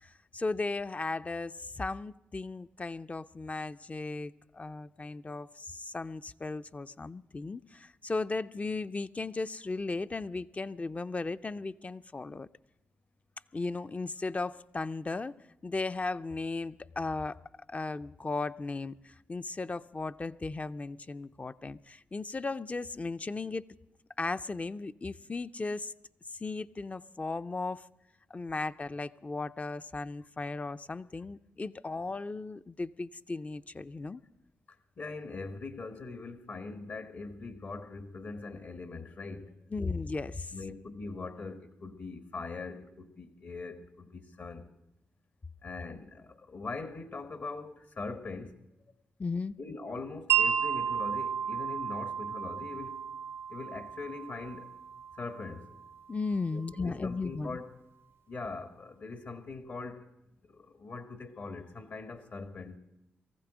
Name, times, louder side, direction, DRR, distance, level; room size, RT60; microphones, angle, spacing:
voice 1, 0.0-12.5 13.5-15.3 15.6-17.4 17.7-23.7 24.2-25.9 26.4-27.9 28.3-34.2 39.7-40.5 49.2-49.6 56.1-57.6, left 3 dB, 30° left, 0.5 m, -36 dB
voice 2, 35.0-39.5 40.5-44.7 45.6-48.5 49.6-53.0 53.5-54.7 55.1-55.7 56.5-57.8 58.3-60.1 60.5-62.8, left 3 dB, 60° left, 1.4 m, -41 dB
Wind chime, 50.3-56.4, right 8 dB, 70° right, 0.6 m, -33 dB
19.0 x 15.0 x 5.0 m
supercardioid pair, 45°, 5 cm